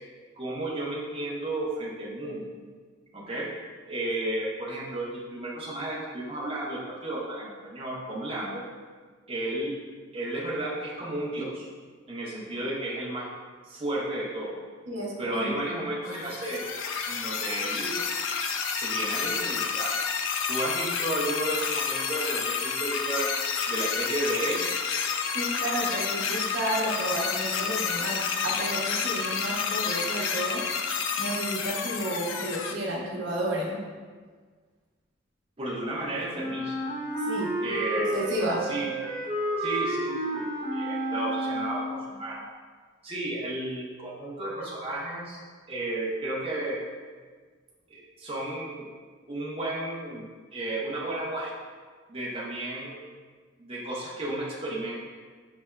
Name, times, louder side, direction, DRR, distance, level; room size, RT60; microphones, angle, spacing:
voice 1, 0.4-2.4 3.1-3.5 3.9-8.7 9.3-9.7 10.1-11.6 12.1-13.3 13.7-14.6 15.2-16.7 17.1-18.0 18.7-19.9 20.5-23.3 23.7-24.6 35.6-36.8 37.6-38.2 38.6-38.9 39.6-42.4 43.0-45.4 45.7-46.8 47.9-48.9 49.3-50.2 50.5-51.5 52.1-53.0 53.6-55.0, right 1 dB, 30° right, -6 dB, 0.6 m, -33 dB
voice 2, 14.9-15.6 25.3-30.6 31.2-33.8 37.3-37.5 38.1-38.6, right 1 dB, 75° right, -3 dB, 0.8 m, -31 dB
sound 1, 16.1-32.7, left 6 dB, 80° left, 0.3 m, -30 dB
Wind instrument woodwind instrument, 36.3-42.1, right 1 dB, 5° left, 1.5 m, -31 dB
5.6 x 3.3 x 2.2 m, 1.5 s
head